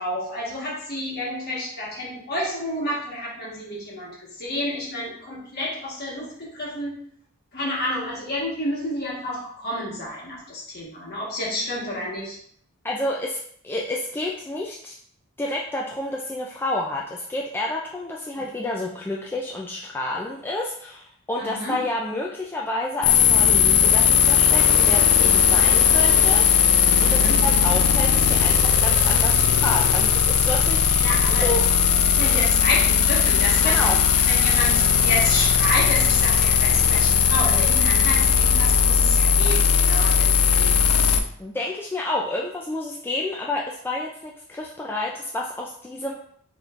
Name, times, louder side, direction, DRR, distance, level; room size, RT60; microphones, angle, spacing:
voice 1, 0.0-7.0 7.5-12.4 18.4-18.5 21.4-21.8 27.1-27.4 31.0-31.5 32.0-33.9 34.3-41.0, left 1 dB, 45° left, -5 dB, 1.4 m, -30 dB
voice 2, 12.8-13.4 13.6-14.9 15.4-31.1 31.4-31.6 32.2-32.4 33.6-34.0 41.4-46.1, left 2 dB, 10° left, -3 dB, 0.3 m, -29 dB
sound 1, 23.0-41.2, left 7 dB, 80° left, 0.4 m, -18 dB
5.1 x 3.1 x 2.4 m, 0.63 s
head